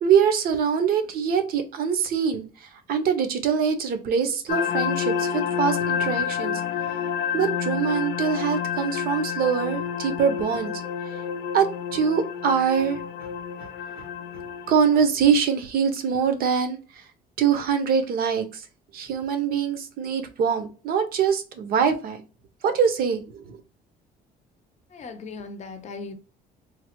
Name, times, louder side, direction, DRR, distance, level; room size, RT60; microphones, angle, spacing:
voice 1, 0.0-6.6 6.9-7.0 7.3-10.7 11.5-13.3 13.6-13.7 14.0-14.1 14.3-14.4 14.7-17.1 17.4-18.7 18.9-22.2 22.6-23.6, right 7 dB, 60° right, 0.7 m, -24 dB
sound 1, 4.5-14.7, left 8 dB, 90° left, 0.4 m, -29 dB
voice 2, 24.9-26.1, left 4 dB, 45° left, 0.6 m, -38 dB
3.2 x 2.0 x 2.9 m
cardioid pair, 110°, 17 cm